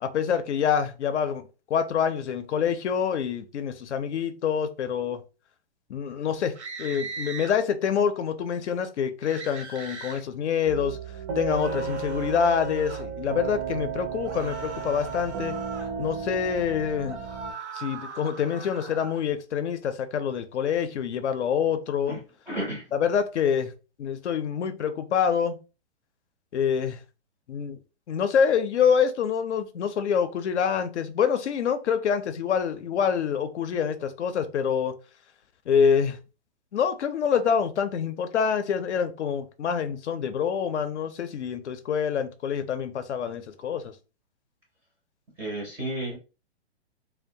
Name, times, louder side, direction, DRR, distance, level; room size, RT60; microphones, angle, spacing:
voice 1, 0.0-1.4 1.7-5.2 5.9-11.0 11.4-15.5 16.0-17.2 17.7-22.2 22.9-23.7 24.0-25.6 26.5-27.0 27.5-27.8 28.1-34.9 35.7-36.2 36.7-43.9, left 7 dB, 85° left, 0.5 m, -26 dB
sound 1, 6.5-7.5 9.2-10.2 11.5-13.1 14.2-15.9 17.1-19.2, right 4 dB, 85° right, 0.8 m, -40 dB
sound 2, 10.7-17.5, right 6 dB, 60° right, 0.5 m, -34 dB
voice 2, 22.5-22.8 45.4-46.2, right 1 dB, 10° right, 0.4 m, -32 dB
2.2 x 2.1 x 2.6 m
hypercardioid pair, 135°, 34 cm